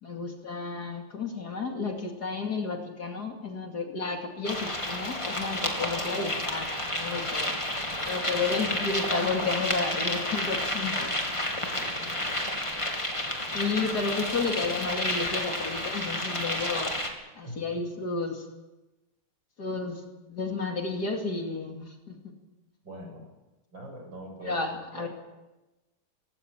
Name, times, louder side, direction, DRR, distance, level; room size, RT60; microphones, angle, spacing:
voice 1, 0.0-6.7 6.9-7.6 8.0-11.1 13.5-16.9 17.4-18.5 19.6-20.0 20.3-22.3 24.4-25.1, left 4 dB, 50° left, 3 dB, 3.0 m, -32 dB
sound 1, 4.4-17.1, left 1 dB, 15° left, 2.7 m, -31 dB
voice 2, 8.2-8.5 11.5-12.4 17.4-17.8 22.8-23.3 23.7-24.6 24.9-25.1, right 1 dB, 60° right, 1 dB, 7.5 m, -43 dB
19.5 x 17.0 x 8.9 m, 1.1 s
omnidirectional pair, 2.3 m